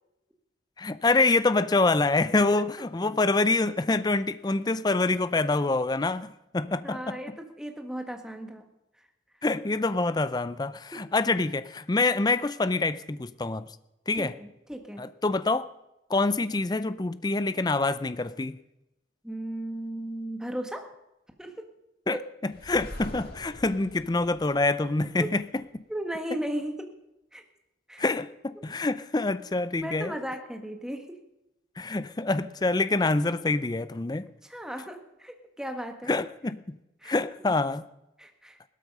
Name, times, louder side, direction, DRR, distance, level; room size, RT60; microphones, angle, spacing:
voice 1, 0.8-7.2 9.4-13.7 14.1-14.3 15.0-15.7 16.1-18.6 22.1-22.2 22.4-25.4 25.7-25.8 28.0-30.1 31.8-34.3 36.1-36.8 37.0-37.8, left 3 dB, 20° left, 15 dB, 0.4 m, -26 dB
voice 2, 6.8-8.7 10.9-11.0 14.1-15.1 19.2-21.0 21.4-21.7 22.1-22.2 25.2-25.3 25.9-26.9 27.3-27.4 27.9-28.0 29.8-31.2 34.4-36.1 37.0-37.1 37.4-37.5 38.2-38.6, right 1 dB, 5° right, 5 dB, 1.4 m, -36 dB
sound 1, 22.5-25.5, left 1 dB, 50° left, 2.3 m, -43 dB
17.0 x 13.0 x 5.4 m, 0.92 s
head